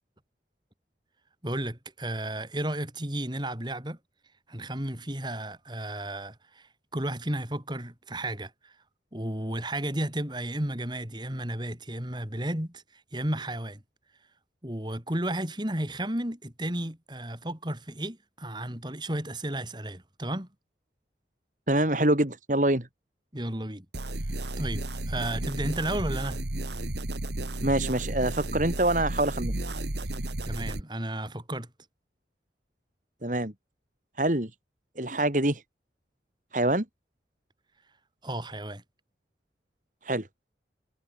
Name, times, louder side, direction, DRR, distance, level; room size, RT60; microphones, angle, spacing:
voice 1, 1.4-4.0 4.5-8.7 9.1-13.8 14.6-20.5 23.3-23.8 24.2-26.4 30.4-31.7 38.2-38.8, right 1 dB, 25° right, 4.8 m, -33 dB
voice 2, 21.7-22.9 27.6-29.5 33.2-33.5 34.2-34.5 35.0-35.6 36.5-36.8 40.0-40.3, right 1 dB, 45° right, 2.8 m, -25 dB
sound 1, 23.9-30.8, right 1 dB, 75° right, 2.1 m, -33 dB
head